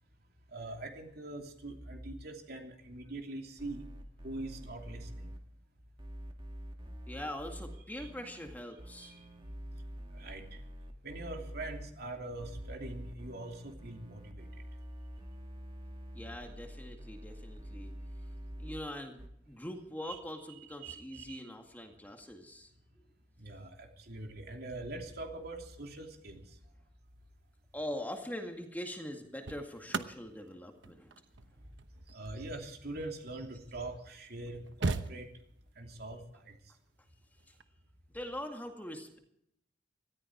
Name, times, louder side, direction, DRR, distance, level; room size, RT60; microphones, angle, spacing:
voice 1, 0.5-3.8 4.2-5.3 7.9-8.1 9.0-9.2 10.1-10.4 11.0-14.5 20.0-20.2 20.8-21.4 23.4-26.4 32.1-35.3 35.8-36.5, right 2 dB, 60° right, 3 dB, 2.9 m, -43 dB
sound 1, 3.6-5.4 6.0-8.5 8.8-11.8 12.4-18.8 19.2-19.3, equal, 30° right, 1.9 m, -46 dB
voice 2, 7.1-9.1 16.1-17.9 18.6-22.7 27.7-31.1 37.5-37.6 38.1-39.2, left 1 dB, 10° left, 3 dB, 2.1 m, -42 dB
sound 2, 27.8-28.1 29.0-33.6 34.2-34.3 34.4-35.7 37.4-37.6, right 3 dB, 80° right, 1.0 m, -40 dB
19.0 x 14.0 x 4.7 m, 0.72 s
head